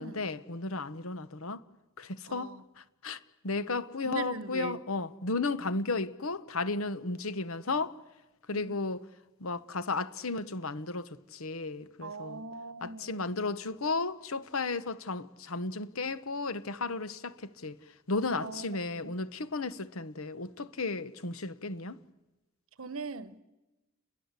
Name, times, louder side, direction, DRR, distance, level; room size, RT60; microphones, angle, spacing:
voice 1, 0.0-1.6 2.0-3.2 3.4-8.0 8.5-9.0 9.4-12.4 12.8-17.8 18.1-22.0, left 3 dB, 65° left, 1.1 m, -34 dB
voice 2, 2.3-2.6 4.0-4.8 8.5-8.8 12.0-13.3 18.4-18.6 19.0-19.2 22.8-23.4, right 3 dB, 60° right, 1.1 m, -40 dB
29.5 x 22.0 x 8.3 m
head